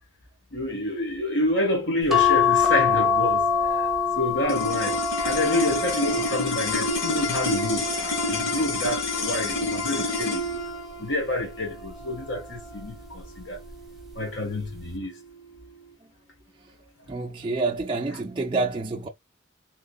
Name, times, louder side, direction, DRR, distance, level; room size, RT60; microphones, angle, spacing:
voice 1, 0.5-3.4 3.7-3.9 4.2-10.6 11.0-13.6 14.1-15.1, left 1 dB, 65° left, 1.5 m, -28 dB
sound 1, 2.1-8.7 9.4-10.8 12.0-12.4 12.8-12.9, left 6 dB, ahead, 0.9 m, -26 dB
sound 2, 4.5-14.9, left 2 dB, 85° left, 1.2 m, -29 dB
voice 2, 17.1-19.1, right 3 dB, 25° right, 0.4 m, -28 dB
3.6 x 3.0 x 2.3 m
head